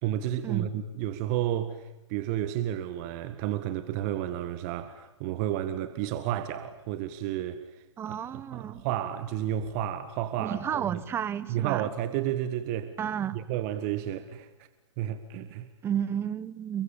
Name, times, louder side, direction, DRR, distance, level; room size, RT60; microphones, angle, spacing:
voice 1, 0.0-11.0 11.5-13.0 13.3-14.5 15.0-15.7, right 11 dB, 35° right, 1.8 m, -32 dB
voice 2, 8.0-8.9 10.4-11.9 13.0-13.4 15.8-16.8, right 9 dB, 15° right, 1.2 m, -32 dB
29.5 x 22.5 x 8.8 m
figure-of-eight pair, 125°, 15 cm